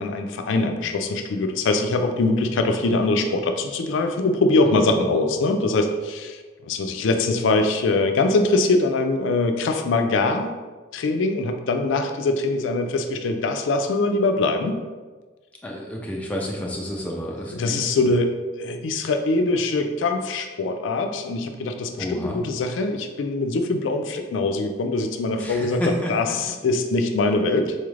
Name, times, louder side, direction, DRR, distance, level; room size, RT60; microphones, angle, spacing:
voice 1, 0.0-10.5 10.9-14.8 17.5-25.8 26.1-27.8, left 2 dB, 80° left, 6 dB, 0.4 m, -23 dB
voice 2, 4.6-5.0 15.6-18.0 22.0-22.4 25.4-26.3, equal, 10° left, -2 dB, 0.4 m, -30 dB
4.1 x 2.4 x 3.1 m, 1.3 s
head